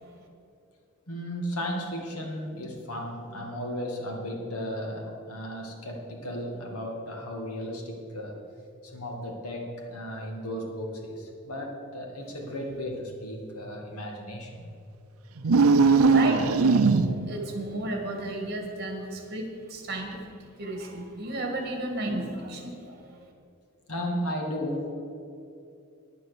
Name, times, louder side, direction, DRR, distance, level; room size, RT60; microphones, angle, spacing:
voice 1, 1.1-8.4 8.8-14.7 23.9-24.9, equal, 85° left, 1 dB, 2.1 m, -35 dB
sound 1, 15.4-17.4, right 4 dB, 75° right, 0.6 m, -20 dB
voice 2, 16.1-23.2, right 1 dB, 45° right, 2 dB, 1.9 m, -34 dB
10.0 x 9.3 x 6.6 m, 2.5 s
head